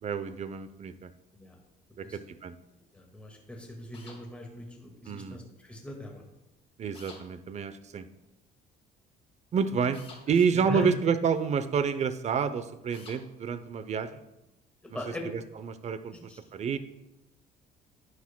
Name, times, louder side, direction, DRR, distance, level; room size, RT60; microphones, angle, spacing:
voice 1, 0.0-1.1 2.0-2.6 5.1-5.4 6.8-8.1 9.5-10.0 10.3-14.2 14.9-15.0 15.6-16.1 16.5-16.8, right 6 dB, 40° right, 12 dB, 0.7 m, -29 dB
voice 2, 2.9-6.2 10.5-10.9 14.9-15.3 16.3-16.4, left 1 dB, 5° left, 0 dB, 1.9 m, -40 dB
sound 1, 3.9-4.2 6.9-7.2 9.9-10.2 12.9-13.2, left 3 dB, 35° left, 2.1 m, -48 dB
12.0 x 9.8 x 2.2 m, 0.92 s
cardioid pair, 110°, 17 cm